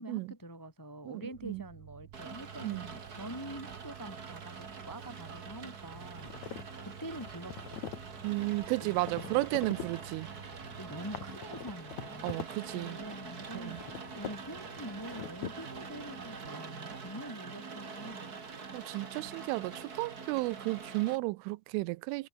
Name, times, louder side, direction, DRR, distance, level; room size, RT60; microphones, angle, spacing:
voice 1, 0.0-7.8 8.8-9.9 10.8-18.3, equal, 5° left, 1.5 m, -46 dB
voice 2, 1.1-1.6 2.6-2.8 8.2-10.3 12.2-13.0 13.5-13.8 18.7-22.3, right 22 dB, 85° right, 3.1 m, -33 dB
sound 1, 1.3-11.3, right 14 dB, 70° right, 2.9 m, -52 dB
Rain, 2.1-21.1, right 5 dB, 40° right, 1.2 m, -45 dB
sound 2, 5.9-16.4, left 9 dB, 55° left, 2.2 m, -46 dB
omnidirectional pair, 5.6 m